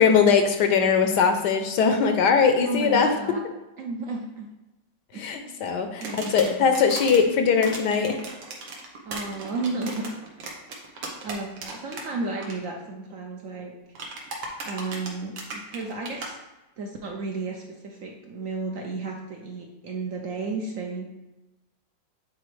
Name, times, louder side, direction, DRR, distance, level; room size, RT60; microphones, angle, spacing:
voice 1, 0.0-3.1 5.2-8.2, left 6 dB, 70° left, 6 dB, 1.2 m, -21 dB
voice 2, 2.6-3.4 3.8-4.5 5.1-5.6 6.0-6.8 9.0-10.2 10.7-10.9 11.2-13.7 14.6-16.4 16.8-21.1, right 3 dB, 65° right, 1 dB, 0.8 m, -33 dB
sound 1, 6.0-7.2 7.6-12.0 12.3-12.5 13.9-16.3, right 3 dB, 80° right, 1.8 m, -36 dB
9.1 x 4.2 x 3.2 m, 1.0 s
omnidirectional pair, 2.1 m